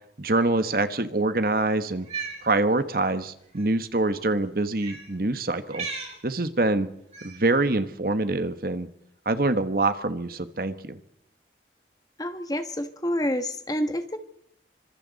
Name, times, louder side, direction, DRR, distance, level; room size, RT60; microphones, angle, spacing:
voice 1, 0.2-2.1 2.4-5.9 6.2-6.9 7.2-8.9 9.2-11.0, right 2 dB, 55° right, 10 dB, 1.4 m, -25 dB
Cat, 1.9-2.4 3.5-3.6 4.8-5.1 5.7-6.2 7.1-7.5, right 5 dB, 35° right, 6.2 m, -35 dB
voice 2, 12.2-14.2, equal, 20° left, 8 dB, 1.4 m, -28 dB
27.5 x 25.5 x 4.2 m, 0.73 s
head